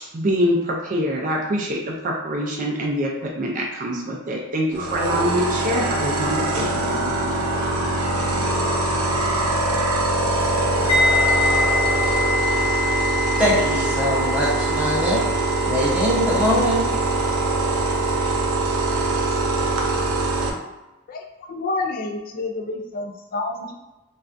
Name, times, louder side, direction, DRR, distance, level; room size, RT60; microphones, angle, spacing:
voice 1, 0.1-7.4, equal, 35° right, -1 dB, 0.4 m, -25 dB
sound 1, 4.7-20.5, right 2 dB, 90° right, 0.6 m, -23 dB
sound 2, 10.9-19.8 20.1-20.4, left 3 dB, 70° left, 0.9 m, -26 dB
voice 2, 13.4-15.2 15.6-16.8, equal, 5° right, -7 dB, 0.7 m, -22 dB
voice 3, 21.5-23.7, left 2 dB, 40° left, 3 dB, 0.4 m, -28 dB
3.3 x 2.4 x 2.5 m, 1.0 s
head